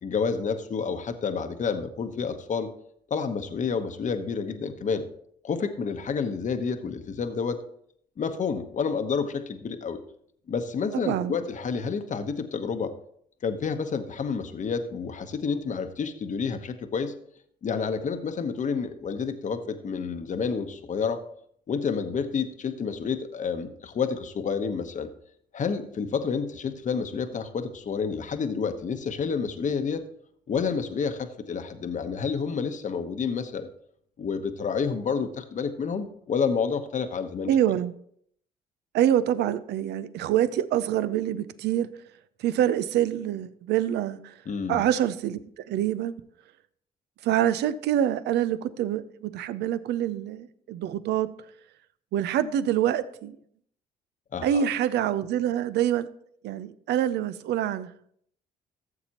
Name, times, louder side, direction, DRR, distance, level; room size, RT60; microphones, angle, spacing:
voice 1, 0.0-2.7 3.1-5.1 5.4-7.6 8.2-10.0 10.5-12.9 13.4-17.1 17.6-21.2 21.7-25.1 25.5-30.1 30.5-33.7 34.2-37.5 44.5-44.8 54.3-54.6, left 5 dB, 45° left, 1.0 m, -29 dB
voice 2, 11.0-11.4 37.5-37.9 38.9-41.9 42.4-44.3 44.7-45.4 45.7-46.2 47.2-51.3 52.1-53.4 54.4-56.1 56.4-57.9, right 11 dB, 70° right, 0.6 m, -26 dB
14.5 x 7.2 x 2.9 m
supercardioid pair, 60°, 18 cm